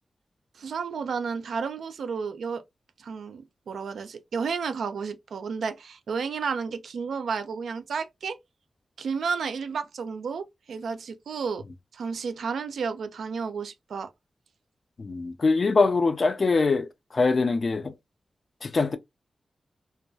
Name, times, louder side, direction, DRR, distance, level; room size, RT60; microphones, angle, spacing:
voice 1, 0.6-2.6 3.0-8.4 9.0-11.6 11.9-14.1, right 5 dB, 85° right, 0.3 m, -32 dB
voice 2, 15.0-18.0 18.6-19.0, left 3 dB, 60° left, 0.4 m, -23 dB
2.2 x 2.2 x 2.6 m
cardioid pair, 40°, 0 cm